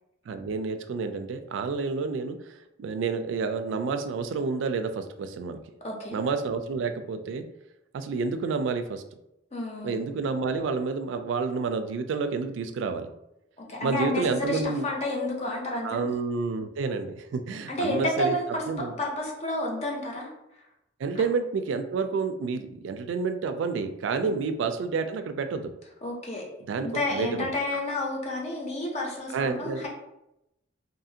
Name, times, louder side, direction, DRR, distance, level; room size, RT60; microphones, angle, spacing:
voice 1, 0.3-2.4 2.8-5.6 6.1-7.4 7.9-9.0 9.8-13.1 13.8-14.9 15.8-18.3 18.7-18.9 21.0-25.7 26.7-27.5 29.3-29.9, right 4 dB, 75° right, 9 dB, 0.3 m, -29 dB
voice 2, 5.8-6.2 9.5-10.0 13.6-16.1 17.5-20.3 21.2-21.3 24.2-24.4 26.0-26.4 26.8-29.9, left 1 dB, 35° left, -1 dB, 0.6 m, -30 dB
2.7 x 2.4 x 2.7 m, 0.86 s
head